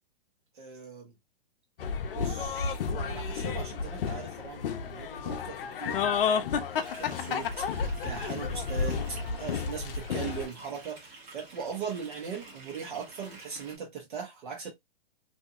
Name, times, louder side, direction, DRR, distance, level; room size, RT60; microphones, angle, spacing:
voice 1, 0.5-1.1 2.1-7.6 8.0-14.7, right 6 dB, 55° right, 1.2 m, -40 dB
sound 1, 1.8-10.5, left 6 dB, 60° left, 0.6 m, -31 dB
sound 2, 6.8-13.8, right 2 dB, 20° right, 0.8 m, -50 dB
2.7 x 2.5 x 2.4 m
hypercardioid pair, 150°, 31 cm